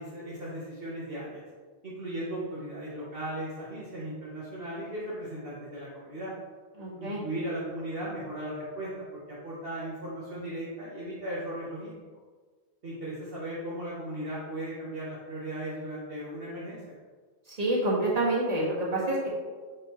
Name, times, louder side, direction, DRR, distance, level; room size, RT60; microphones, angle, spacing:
voice 1, 0.0-1.4 1.8-6.3 7.0-11.9 12.8-17.0, right 1 dB, 60° right, -7 dB, 1.4 m, -37 dB
voice 2, 6.8-7.2 17.5-19.3, right 1 dB, 35° right, -6 dB, 1.9 m, -27 dB
6.7 x 6.3 x 3.1 m, 1.5 s
omnidirectional pair, 1.1 m